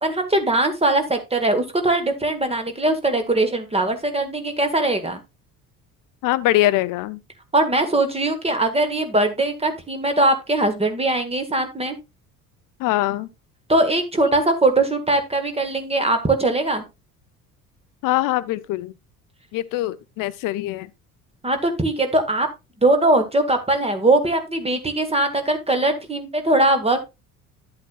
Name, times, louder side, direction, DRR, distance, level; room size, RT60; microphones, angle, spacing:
voice 1, 0.0-5.2 7.5-12.0 13.7-16.8 21.4-22.5 22.8-27.0, right 2 dB, 15° right, 1.6 m, -21 dB
voice 2, 6.2-7.2 12.8-13.3 18.0-18.9 19.5-20.9, left 16 dB, 45° left, 0.7 m, -22 dB
11.0 x 8.2 x 2.4 m
figure-of-eight pair, 55°, 45 cm